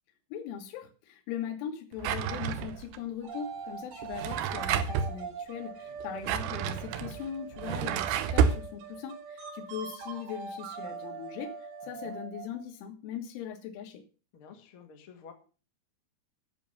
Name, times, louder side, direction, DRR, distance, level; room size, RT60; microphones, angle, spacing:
voice 1, 0.3-14.0, left 8 dB, 75° left, 5 dB, 3.9 m, -40 dB
Drawer open or close, 2.0-3.0 4.0-5.1 6.0-8.6, right 7 dB, 80° right, 2.5 m, -29 dB
sound 1, 3.2-12.7, right 5 dB, 60° right, 4.3 m, -42 dB
voice 2, 5.9-6.3 11.8-12.2 14.3-15.3, left 6 dB, 55° left, 4 dB, 1.5 m, -52 dB
10.5 x 7.4 x 7.1 m, 0.36 s
omnidirectional pair, 5.9 m